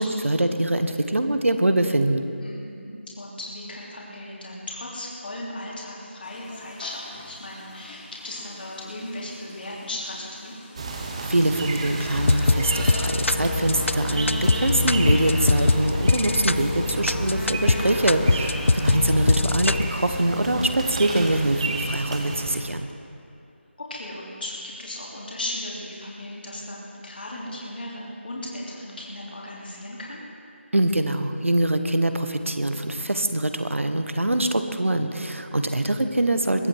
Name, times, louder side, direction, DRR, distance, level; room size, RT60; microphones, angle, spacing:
voice 1, 0.0-2.3 11.3-22.9 30.7-36.7, right 1 dB, 85° right, 8 dB, 1.2 m, -24 dB
voice 2, 2.4-2.9 3.2-10.6 17.8-18.2 23.8-30.2 35.5-35.8, left 1 dB, 50° left, -4 dB, 3.1 m, -36 dB
sound 1, 6.2-21.8, left 2 dB, 20° left, 1.0 m, -48 dB
sound 2, 10.8-22.6, right 3 dB, 30° right, 1.1 m, -32 dB
sound 3, 12.1-19.9, left 3 dB, 75° left, 0.4 m, -23 dB
22.0 x 9.0 x 4.7 m, 2.5 s
figure-of-eight pair, 165°, 7 cm